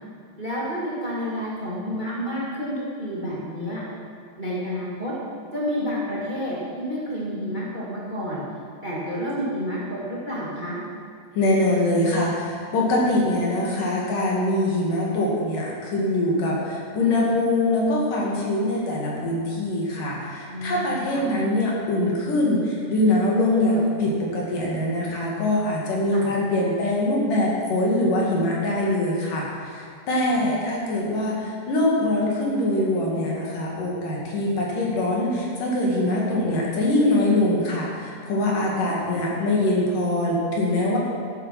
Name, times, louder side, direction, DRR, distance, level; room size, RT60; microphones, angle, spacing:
voice 1, 0.4-3.8 4.4-5.1 5.5-8.4 8.8-10.8 20.5-21.2 23.5-23.8 26.1-26.3 30.3-30.4, equal, 20° right, -7 dB, 1.4 m, -30 dB
voice 2, 11.3-41.0, left 1 dB, 55° left, -3 dB, 3.6 m, -23 dB
14.0 x 8.9 x 5.9 m, 2.2 s
omnidirectional pair, 5.1 m